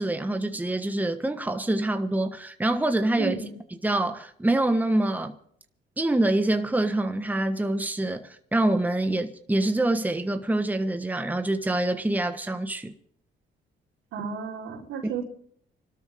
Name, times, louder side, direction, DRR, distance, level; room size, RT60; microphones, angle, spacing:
voice 1, 0.0-3.4 3.8-5.3 6.0-12.9, right 1 dB, 10° right, 1.3 m, -25 dB
voice 2, 3.2-3.5 14.1-15.2, right 6 dB, 90° right, 4.1 m, -33 dB
26.0 x 12.5 x 3.6 m
cardioid pair, 90°, 20 cm